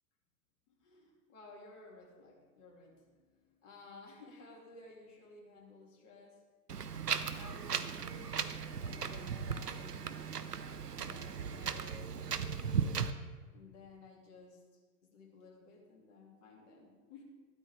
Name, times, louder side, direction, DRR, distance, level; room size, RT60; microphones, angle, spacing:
voice 1, 0.7-6.4 7.3-10.1 10.9-12.5 13.5-14.6 15.0-17.2, left 3 dB, 50° left, -1 dB, 2.6 m, -56 dB
Wind, 6.7-13.1, right 6 dB, 90° right, 0.7 m, -37 dB
12.5 x 12.0 x 3.4 m, 1.4 s
figure-of-eight pair, 100°, 46 cm